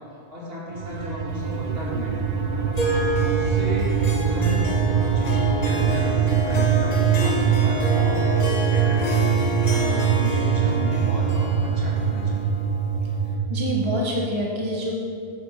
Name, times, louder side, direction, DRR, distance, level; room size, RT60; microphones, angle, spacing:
voice 1, 0.0-12.5, left 1 dB, 65° right, -7 dB, 2.5 m, -34 dB
sound 1, 0.7-14.0, right 7 dB, 50° right, 0.6 m, -23 dB
Harp, 2.7-13.3, equal, 40° left, 1.0 m, -29 dB
voice 2, 13.5-14.9, equal, 30° right, -2 dB, 0.9 m, -26 dB
9.2 x 4.3 x 6.5 m, 2.4 s
omnidirectional pair, 1.1 m